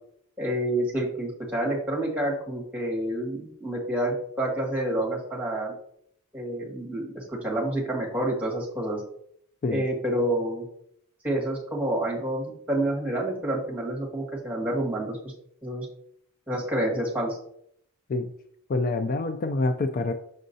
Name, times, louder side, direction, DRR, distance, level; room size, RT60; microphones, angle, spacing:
voice 1, 0.4-5.7 6.3-9.0 9.7-10.7 11.2-15.3 15.6-15.9 16.5-17.4, right 1 dB, 5° right, -2 dB, 1.9 m, -28 dB
voice 2, 18.7-20.1, left 2 dB, 40° left, 7 dB, 0.4 m, -26 dB
6.4 x 6.3 x 2.7 m, 0.69 s
head